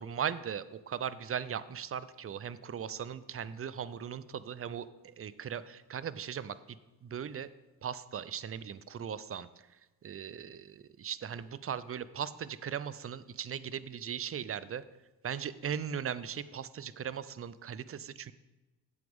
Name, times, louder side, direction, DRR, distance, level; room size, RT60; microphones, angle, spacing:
voice 1, 0.0-4.9 5.2-6.8 7.0-7.5 7.8-9.5 10.0-14.8 15.2-18.3, right 8 dB, 35° right, 16 dB, 0.5 m, -38 dB
9.5 x 7.6 x 3.6 m, 1.1 s
supercardioid pair, 55°, 43 cm